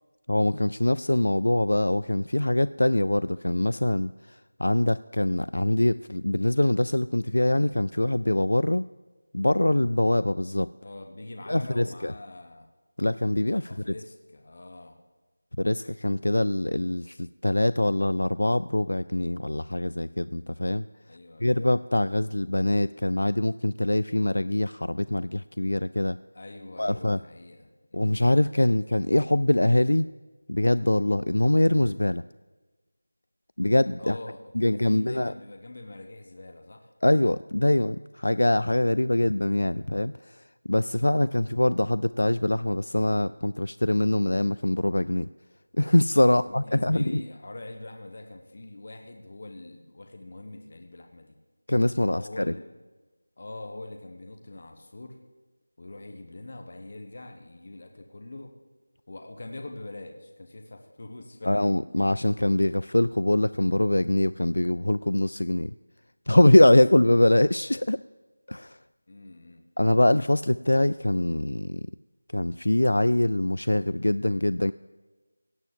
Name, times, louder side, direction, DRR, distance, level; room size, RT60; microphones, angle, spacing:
voice 1, 0.3-8.9 9.3-10.7 11.5-12.1 13.0-13.9 15.6-20.9 21.4-26.2 26.8-27.2 27.9-30.1 30.5-32.2 33.6-34.2 34.6-35.3 37.0-45.3 45.7-47.2 51.7-52.5 61.4-65.7 66.3-68.0 68.5-68.8 69.8-71.9 72.3-74.7, left 1 dB, 80° left, 15 dB, 0.3 m, -23 dB
voice 2, 10.8-12.7 13.6-15.0 21.0-21.7 26.3-28.4 34.0-36.9 46.2-51.4 52.0-52.7 53.4-55.2 55.8-58.5 59.1-61.7 69.1-69.6, left 2 dB, 30° left, 4 dB, 1.0 m, -43 dB
17.0 x 6.9 x 7.4 m, 1.2 s
figure-of-eight pair, 180°, 0 cm